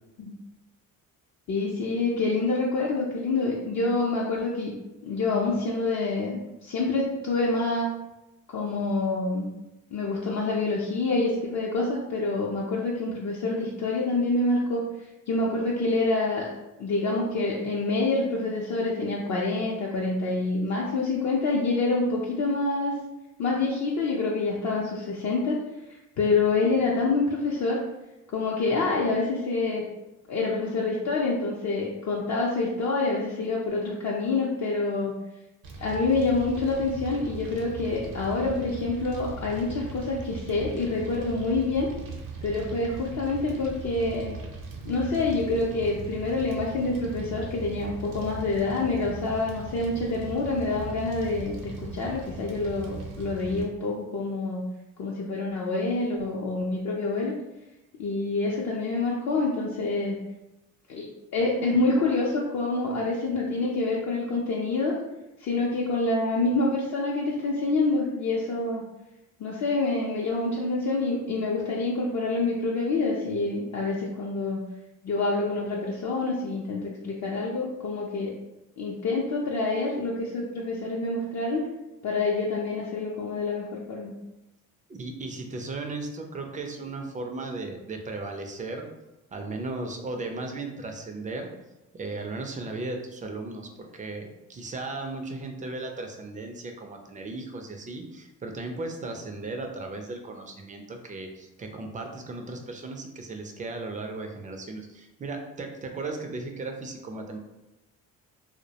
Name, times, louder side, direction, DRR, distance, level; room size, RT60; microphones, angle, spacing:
voice 1, 1.5-4.7 5.0-7.9 8.5-9.5 9.9-14.8 15.3-16.5 16.8-22.9 23.4-25.6 25.9-27.8 28.3-29.8 30.3-35.2 35.8-41.9 42.4-44.4 44.8-54.6 55.0-57.3 58.0-60.2 60.9-61.1 61.3-65.0 65.4-68.8 69.4-74.6 75.0-78.3 78.8-81.7 82.0-84.1, left 3 dB, 50° left, -3 dB, 0.5 m, -27 dB
Fire, 35.6-53.6, right 3 dB, 70° right, 0.6 m, -39 dB
voice 2, 84.9-88.9 89.3-91.5 91.9-107.4, right 3 dB, 25° right, 3 dB, 0.3 m, -36 dB
2.2 x 2.1 x 2.7 m, 0.97 s
cardioid pair, 90°, 35 cm